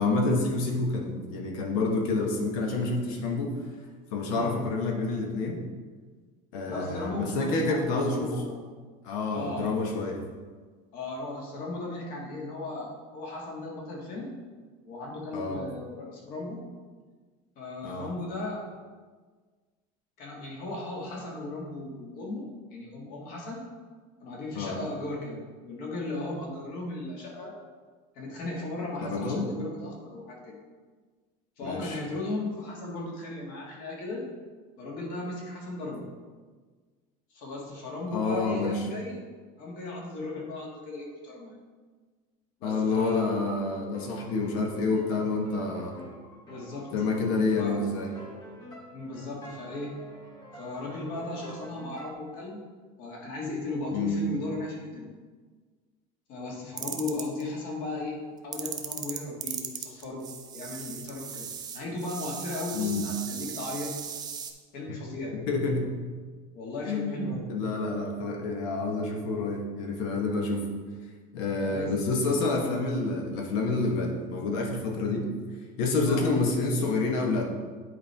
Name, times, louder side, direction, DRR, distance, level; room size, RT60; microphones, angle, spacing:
voice 1, 0.0-3.5 4.1-5.6 6.5-8.3 9.0-10.2 15.3-15.6 17.8-18.1 24.5-24.8 29.0-29.5 31.6-32.0 38.1-38.9 42.6-46.0 46.9-48.1 53.9-54.2 62.7-63.1 64.9-65.0 65.3-66.0 66.9-70.7 71.3-75.3 75.8-77.5, left 3 dB, 70° left, 1 dB, 1.3 m, -28 dB
voice 2, 4.3-4.6 6.6-8.6 9.3-9.8 10.9-14.3 14.9-16.6 17.5-18.7 20.2-23.6 24.2-27.5 28.1-30.6 31.6-34.2 34.8-36.1 37.3-39.2 39.6-41.6 42.6-43.3 46.5-46.9 47.6-47.8 48.9-50.0 50.5-52.6 53.0-55.1 56.3-58.2 58.4-60.3 60.5-64.0 64.7-65.3 66.5-67.4 71.6-72.0 76.0-76.2, left 2 dB, 50° left, -2 dB, 1.9 m, -36 dB
sound 1, 43.9-52.1, equal, 20° left, 0.8 m, -47 dB
sound 2, 56.8-57.4 58.5-64.5, right 7 dB, 20° right, 0.5 m, -37 dB
9.7 x 4.4 x 3.5 m, 1.5 s
cardioid pair, 165°, 18 cm